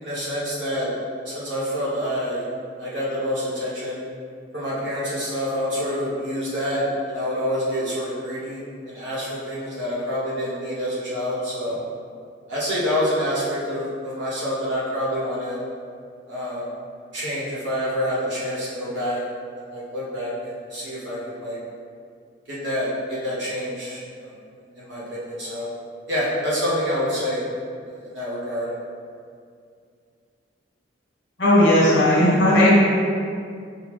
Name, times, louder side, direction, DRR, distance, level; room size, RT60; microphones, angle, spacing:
voice 1, 0.0-0.9 1.2-2.5 2.8-4.0 4.5-11.8 12.5-15.6 16.3-16.7 17.1-19.2 19.6-21.6 22.5-24.3 24.8-25.7 26.1-27.4 28.0-28.7, equal, 65° right, -8 dB, 1.4 m, -27 dB
voice 2, 31.4-32.7, left 1 dB, 60° left, -7 dB, 1.4 m, -16 dB
5.6 x 2.6 x 3.3 m, 2.3 s
head